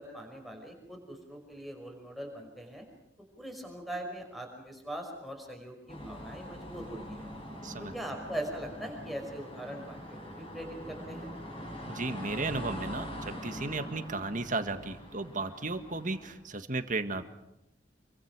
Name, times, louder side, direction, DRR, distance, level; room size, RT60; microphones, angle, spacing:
voice 1, 0.0-2.9 3.4-7.3 7.8-11.3, right 1 dB, ahead, 1 dB, 5.6 m, -41 dB
sound 1, 5.9-16.3, equal, 30° left, 7.7 m, -43 dB
voice 2, 7.6-7.9 11.9-17.2, right 3 dB, 45° right, 8 dB, 1.7 m, -34 dB
27.5 x 24.0 x 6.1 m, 0.89 s
head